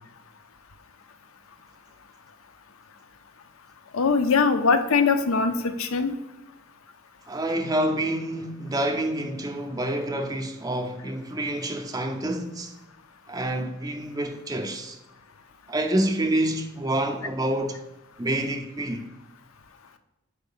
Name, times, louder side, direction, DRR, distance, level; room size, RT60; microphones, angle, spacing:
voice 1, 3.9-6.1, left 4 dB, 85° left, 0.6 m, -21 dB
voice 2, 7.3-12.7 13.3-15.0 15.7-17.8 18.2-19.1, right 1 dB, 20° right, 0.5 m, -27 dB
4.6 x 4.5 x 5.4 m
head